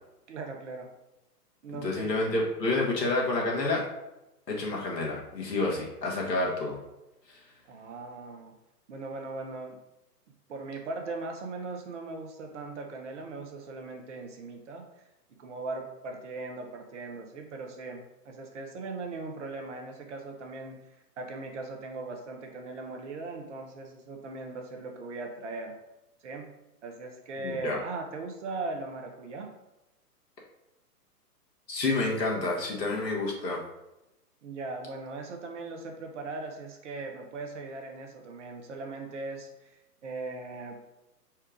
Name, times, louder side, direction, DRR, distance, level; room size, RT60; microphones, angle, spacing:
voice 1, 0.3-0.9 1.6-2.1 7.7-8.5 8.9-9.8 10.5-14.8 15.4-20.8 21.2-25.8 26.2-26.5 26.8-29.5 34.4-39.8 40.0-40.8, right 3 dB, 45° right, 3 dB, 0.9 m, -39 dB
voice 2, 1.8-3.8 4.5-6.8 27.4-27.8 31.7-33.6, left 2 dB, 85° left, -2 dB, 1.6 m, -29 dB
4.4 x 2.4 x 4.8 m, 0.95 s
figure-of-eight pair, 125°, 48 cm